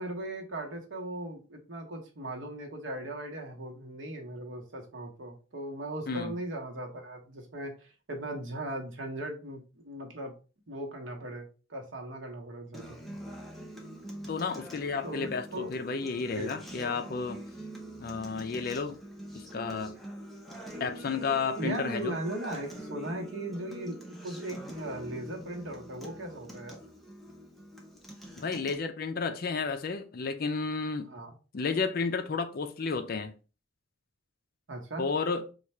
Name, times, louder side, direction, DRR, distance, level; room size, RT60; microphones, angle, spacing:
voice 1, 0.0-10.3 10.7-13.2 15.0-15.7 16.4-16.6 21.6-24.0 24.2-26.8 31.1-31.4 34.7-35.1, right 1 dB, 75° right, 1.0 m, -38 dB
voice 2, 6.1-6.4 14.3-17.4 18.0-19.0 19.3-20.0 20.8-22.2 28.4-31.1 31.5-33.3 35.0-35.5, left 4 dB, 50° left, 0.4 m, -32 dB
Acoustic guitar, 12.7-28.7, equal, ahead, 0.6 m, -44 dB
3.2 x 2.4 x 4.3 m
head